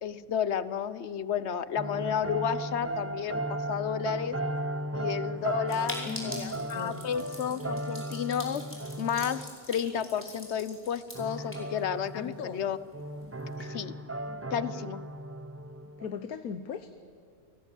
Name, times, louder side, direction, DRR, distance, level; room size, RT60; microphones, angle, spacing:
voice 1, 0.0-4.4 4.9-8.6 9.0-12.8 13.6-13.9 14.5-15.0, left 8 dB, 55° left, 15 dB, 1.0 m, -32 dB
sound 1, 1.8-9.5 9.9-10.1 10.4-10.6 11.1-16.1, right 1 dB, 10° right, 0.7 m, -36 dB
voice 2, 5.7-7.2 12.1-12.6 16.0-17.0, left 7 dB, 75° left, 10 dB, 1.4 m, -39 dB
sound 2, 5.7-12.3 12.6-12.7 12.9-13.0 13.4-13.7, left 1 dB, 10° left, 5.5 m, -44 dB
29.0 x 18.5 x 9.1 m, 2.2 s
omnidirectional pair, 1.5 m